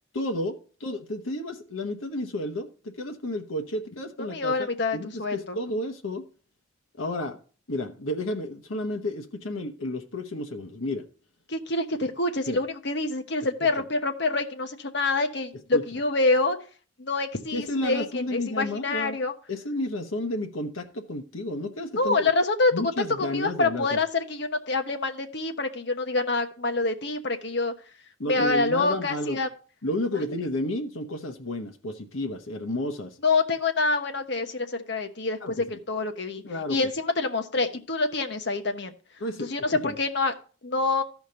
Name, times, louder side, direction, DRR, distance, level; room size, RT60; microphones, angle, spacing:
voice 1, 0.1-6.3 7.0-7.4 7.7-11.0 12.5-12.6 13.8-13.9 15.7-15.8 17.5-19.2 19.5-22.3 22.7-24.0 28.2-29.4 29.8-33.2 35.4-35.7 36.4-36.8 39.2-40.0, left 1 dB, 80° left, 4 dB, 1.1 m, -31 dB
voice 2, 4.3-5.6 11.5-16.6 17.0-19.3 22.0-22.7 23.0-27.7 28.2-29.5 33.2-36.4 36.7-38.9 39.4-40.3 40.6-41.0, left 3 dB, 55° left, 6 dB, 1.0 m, -26 dB
14.0 x 5.1 x 3.7 m, 0.38 s
head